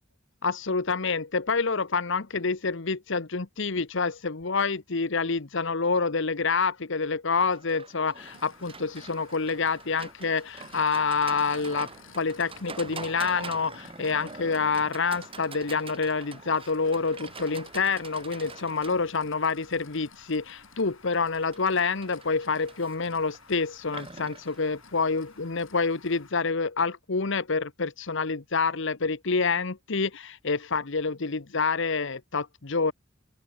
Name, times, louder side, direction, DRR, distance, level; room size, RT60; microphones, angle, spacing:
voice 1, 0.4-11.9 12.1-32.9, left 4 dB, 65° left, 1.1 m, -27 dB
Livestock farm animals working animals, 7.4-25.5, right 4 dB, 25° right, 4.0 m, -45 dB
sound 1, 8.2-26.3, left 5 dB, 80° left, 6.2 m, -54 dB
open air
head